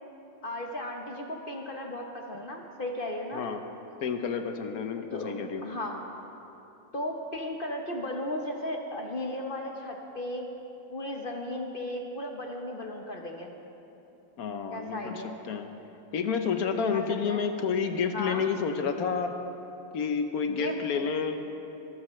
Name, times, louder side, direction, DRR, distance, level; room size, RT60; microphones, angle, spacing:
voice 1, 0.4-3.6 5.1-5.3 5.6-6.0 6.9-10.5 10.9-13.5 14.7-15.4 16.9-17.4 18.1-18.4 20.5-21.0, left 1 dB, 40° left, 2 dB, 0.8 m, -35 dB
voice 2, 4.0-5.6 14.4-15.7 16.1-19.4 19.9-21.4, left 6 dB, 60° left, 7 dB, 1.0 m, -30 dB
25.0 x 13.0 x 3.1 m, 3.0 s
omnidirectional pair, 2.1 m